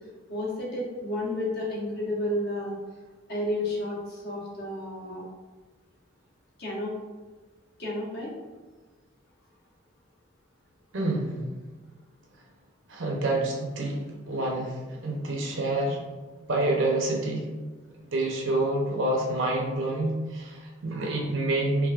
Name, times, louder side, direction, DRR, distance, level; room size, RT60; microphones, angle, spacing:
voice 1, 0.3-2.8 3.3-5.2 6.6-6.9 7.8-8.3, left 1 dB, 50° left, -5 dB, 1.1 m, -31 dB
voice 2, 10.9-11.4 12.9-16.0 16.5-17.5 18.1-21.9, right 2 dB, 65° right, -1 dB, 0.7 m, -27 dB
4.8 x 2.6 x 2.4 m, 1.3 s
head